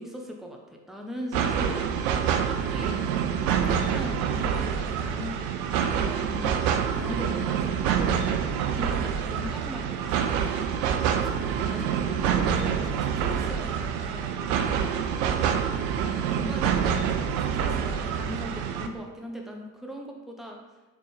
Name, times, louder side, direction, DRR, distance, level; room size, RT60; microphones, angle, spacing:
voice 1, 0.0-1.9 2.5-5.4 5.9-6.6 6.9-8.2 8.7-10.6 11.2-15.4 16.0-20.6, equal, ahead, 1 dB, 0.6 m, -39 dB
sound 1, 1.3-18.9, right 8 dB, 60° right, 0.5 m, -26 dB
3.7 x 3.7 x 3.2 m, 1.2 s
figure-of-eight pair, 60°, 49 cm